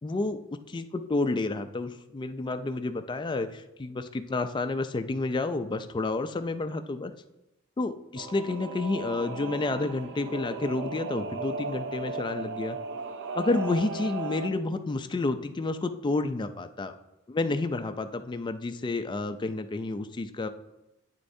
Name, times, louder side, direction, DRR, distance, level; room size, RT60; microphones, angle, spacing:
voice 1, 0.0-7.1 7.8-12.8 13.4-16.9 17.3-20.5, left 3 dB, 20° left, 9 dB, 0.3 m, -30 dB
Singing / Musical instrument, 8.1-14.5, right 3 dB, 55° right, 0.5 m, -36 dB
9.1 x 6.6 x 2.6 m, 0.96 s
head